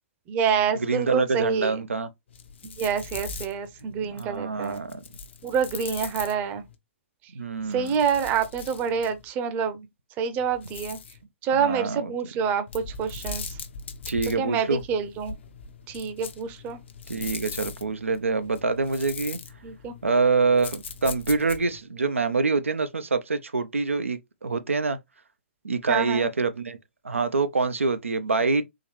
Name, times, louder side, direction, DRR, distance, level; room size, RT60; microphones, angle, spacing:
voice 1, 0.3-1.8 2.6-4.8 5.4-6.6 7.7-9.9 10.2-11.0 11.4-13.6 14.4-15.4 15.9-16.8 19.6-19.9 25.9-26.3, right 7 dB, 25° right, 0.7 m, -27 dB
voice 2, 0.8-2.1 4.0-5.0 7.3-7.9 11.5-12.1 14.1-14.8 17.1-19.4 20.0-25.0 25.6-26.8 27.0-28.6, right 4 dB, 85° right, 0.5 m, -25 dB
sound 1, 2.3-6.8 7.6-9.3 10.4-11.2 12.7-21.8, left 5 dB, 65° left, 0.8 m, -40 dB
3.8 x 3.0 x 3.0 m
figure-of-eight pair, 125°, 7 cm